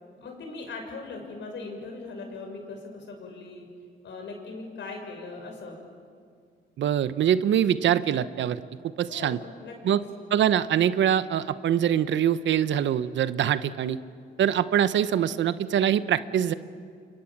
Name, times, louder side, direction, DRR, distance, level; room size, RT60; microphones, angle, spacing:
voice 1, 0.2-3.7 4.0-5.7 9.1-9.9, left 3 dB, 65° left, 2 dB, 6.6 m, -39 dB
voice 2, 6.8-8.6 9.0-9.4 9.8-10.0 10.3-14.0 14.4-16.5, right 10 dB, 70° right, 14 dB, 1.0 m, -24 dB
29.5 x 25.5 x 7.4 m, 2.1 s
cardioid pair, 90°, 20 cm